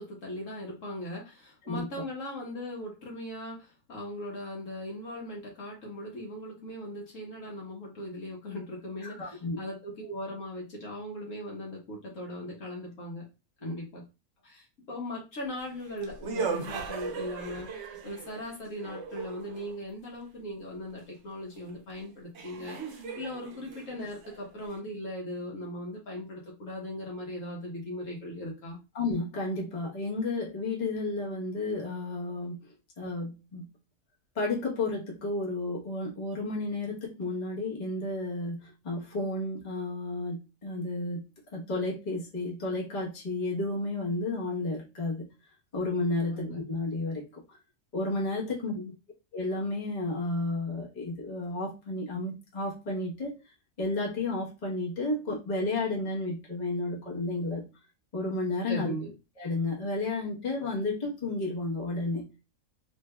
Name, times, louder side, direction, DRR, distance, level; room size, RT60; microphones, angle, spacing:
voice 1, 0.0-13.3 13.6-14.0 14.4-28.8 46.3-46.6 48.7-48.9 58.7-59.1, left 1 dB, 60° left, -2 dB, 1.3 m, -39 dB
voice 2, 9.0-9.6 13.6-13.8 28.9-32.6 33.0-33.7 34.3-41.3 41.5-45.3 45.7-47.4 47.9-48.7 49.3-53.4 53.8-57.6 58.1-58.9 59.4-62.2, left 2 dB, 30° left, -4 dB, 1.1 m, -32 dB
sound 1, 15.5-19.8 21.7-21.8 22.3-24.8, right 5 dB, 60° right, 0.9 m, -38 dB
3.2 x 3.2 x 2.2 m, 0.28 s
omnidirectional pair, 1.6 m